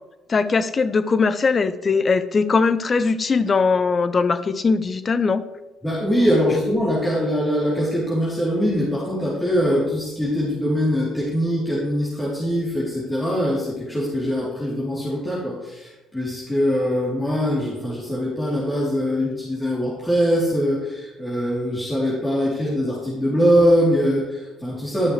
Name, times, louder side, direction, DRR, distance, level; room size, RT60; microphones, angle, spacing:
voice 1, 0.3-5.4, left 4 dB, 35° left, 13 dB, 0.7 m, -20 dB
voice 2, 5.8-25.1, equal, 15° left, -8 dB, 3.2 m, -22 dB
12.0 x 6.4 x 3.2 m, 1.1 s
supercardioid pair, 70°, 0 cm